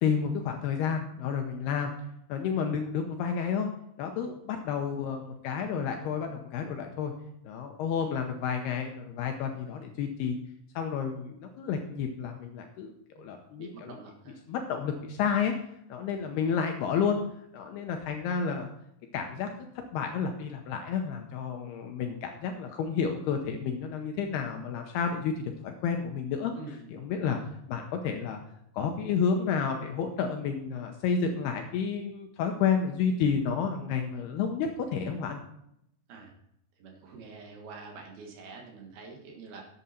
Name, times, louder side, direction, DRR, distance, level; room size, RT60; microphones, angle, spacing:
voice 1, 0.0-1.9 2.3-3.7 4.0-7.1 7.4-10.4 10.8-12.9 13.2-14.0 14.5-15.5 15.9-17.2 17.5-18.7 19.1-19.5 19.9-26.5 26.9-27.4 27.7-28.4 28.7-35.4, left 6 dB, 75° left, 4 dB, 2.5 m, -30 dB
voice 2, 13.6-14.4 26.5-26.9 36.1-36.3 36.8-39.6, right 4 dB, 65° right, 1 dB, 3.1 m, -46 dB
11.5 x 8.2 x 4.3 m, 0.76 s
omnidirectional pair, 5.3 m